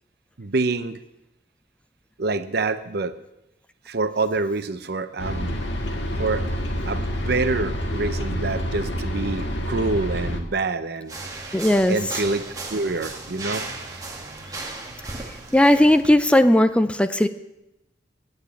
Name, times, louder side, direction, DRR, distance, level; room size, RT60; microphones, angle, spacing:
voice 1, 0.4-1.0 2.2-3.1 3.9-5.6 6.2-6.5 6.9-11.1 11.9-12.4 12.7-13.6 13.9-14.0, right 3 dB, 60° right, 11 dB, 0.8 m, -26 dB
sound 1, 5.2-10.4, equal, 80° left, 1.7 m, -27 dB
sound 2, 11.1-16.1, right 3 dB, 20° right, 1.7 m, -35 dB
voice 2, 11.5-12.0 14.5-14.6 15.5-17.3, left 1 dB, 5° left, 10 dB, 0.4 m, -17 dB
9.8 x 9.1 x 8.4 m, 0.91 s
head